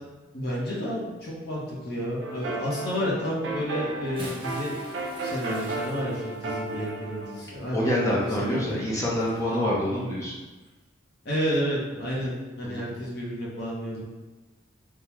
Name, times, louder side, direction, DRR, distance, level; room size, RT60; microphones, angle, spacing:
voice 1, 0.3-4.7 5.2-8.8 11.2-14.0, equal, 55° left, -5 dB, 0.8 m, -31 dB
sound 1, 2.2-7.4, right 2 dB, 70° right, 0.5 m, -34 dB
Bathtub (filling or washing) / Splash splatter, 3.9-9.6 10.5-10.7 12.1-12.2, right 1 dB, 25° right, 0.7 m, -47 dB
voice 2, 7.7-10.3 12.6-12.9, left 1 dB, 15° left, -6 dB, 0.6 m, -26 dB
3.6 x 2.2 x 2.9 m, 1.2 s
head